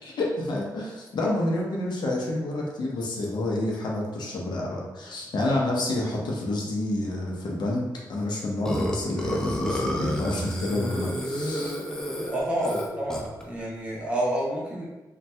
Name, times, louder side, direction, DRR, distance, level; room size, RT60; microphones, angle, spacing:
voice 1, 0.0-7.8 8.1-11.8, left 1 dB, 70° left, -2 dB, 0.6 m, -28 dB
Burping eructation, 8.6-13.4, equal, 10° left, 0.4 m, -30 dB
voice 2, 12.2-14.9, right 1 dB, 15° right, -6 dB, 0.8 m, -29 dB
2.7 x 2.2 x 3.2 m, 1.1 s
wide cardioid pair, 120°, 8 cm